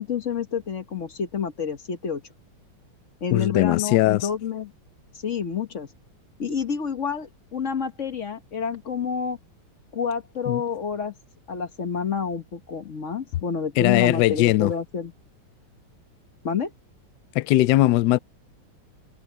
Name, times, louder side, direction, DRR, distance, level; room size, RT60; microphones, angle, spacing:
voice 1, 0.0-2.2 3.2-4.7 5.2-5.9 6.4-9.4 9.9-11.1 11.5-15.1 16.4-16.7, left 6 dB, 45° left, 1.1 m, -28 dB
voice 2, 3.3-4.3 10.5-10.6 13.8-14.7 17.3-18.2, left 16 dB, 80° left, 0.9 m, -19 dB
omnidirectional pair, 2.4 m